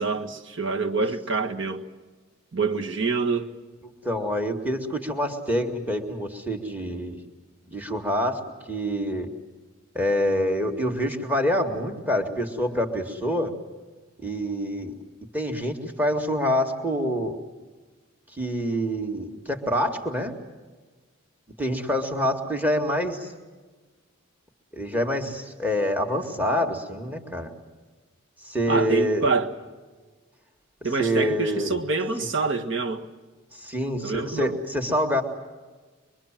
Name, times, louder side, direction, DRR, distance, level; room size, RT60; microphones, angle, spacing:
voice 1, 0.0-1.9 2.5-3.5 28.7-29.5 30.8-33.1 34.0-34.6, right 4 dB, 60° right, 1.7 m, -26 dB
voice 2, 4.0-7.2 7.7-8.4 8.7-9.3 9.9-13.5 14.2-14.9 15.3-17.4 18.3-20.3 21.6-23.3 24.7-27.5 28.4-29.3 31.0-31.8 32.2-32.3 33.5-35.2, equal, 10° right, 2.2 m, -26 dB
24.5 x 23.0 x 7.5 m
head